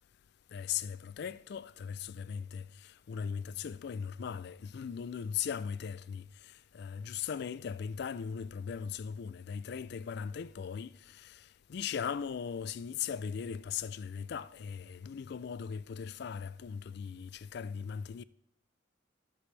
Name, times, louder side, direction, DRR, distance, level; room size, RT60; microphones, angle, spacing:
voice 1, 0.5-6.2 6.7-11.4 11.7-18.2, left 7 dB, 55° left, 0.3 m, -38 dB
11.0 x 7.8 x 3.3 m
head